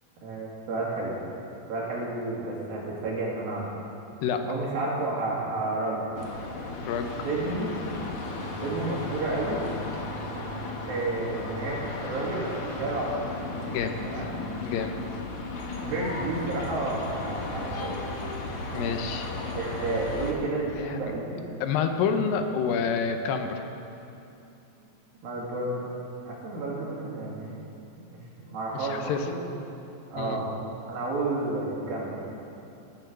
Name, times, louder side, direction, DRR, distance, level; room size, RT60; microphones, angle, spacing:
voice 1, 0.2-1.2 1.7-3.7 4.4-6.2 7.2-7.7 8.6-9.6 10.9-13.4 14.0-14.3 15.8-18.0 19.5-21.4 25.2-25.9 26.3-27.5 28.1-28.2 28.5-29.4 30.1-30.5 30.9-32.3, right 2 dB, 80° right, -4 dB, 4.2 m, -31 dB
sound 1, 6.1-20.3, left 2 dB, 60° left, 1.6 m, -35 dB
voice 2, 6.8-7.3 13.6-14.3 14.6-15.0 18.7-19.3 20.8-21.0 21.6-23.7 28.7-29.3 30.2-30.4, left 6 dB, 80° left, 6 dB, 2.5 m, -28 dB
17.0 x 7.0 x 7.7 m, 2.8 s
omnidirectional pair, 4.1 m